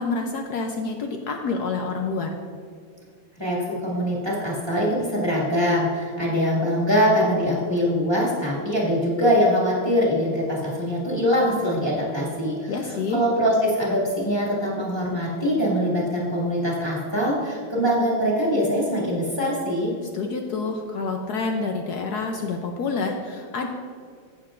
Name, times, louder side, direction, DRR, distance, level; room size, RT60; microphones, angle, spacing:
voice 1, 0.0-2.3 12.7-13.2 20.1-23.7, left 4 dB, 70° left, 3 dB, 0.9 m, -28 dB
voice 2, 3.4-12.7 13.1-19.9, equal, 15° left, -6 dB, 1.8 m, -23 dB
15.0 x 6.7 x 2.5 m, 2.1 s
omnidirectional pair, 2.3 m